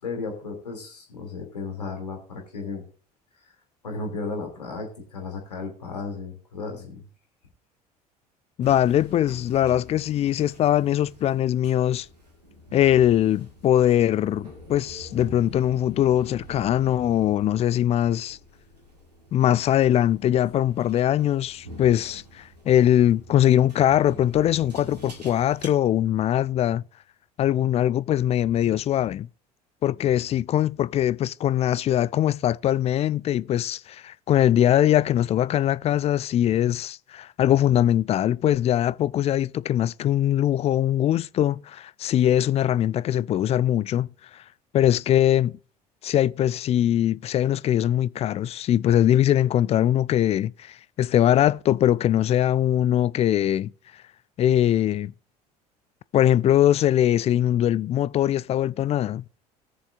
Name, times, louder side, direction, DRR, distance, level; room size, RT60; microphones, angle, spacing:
voice 1, 0.0-2.8 3.4-3.5 3.8-7.1, left 4 dB, 80° left, 2.6 m, -34 dB
voice 2, 8.6-12.1 12.7-18.4 19.3-26.8 27.4-29.3 29.8-44.1 44.7-45.5 46.0-53.7 54.4-55.1 56.1-59.2, left 11 dB, 30° left, 0.4 m, -21 dB
sound 1, 8.6-25.7, right 1 dB, 90° right, 1.6 m, -46 dB
19.5 x 7.0 x 2.5 m
figure-of-eight pair, 65°, 20 cm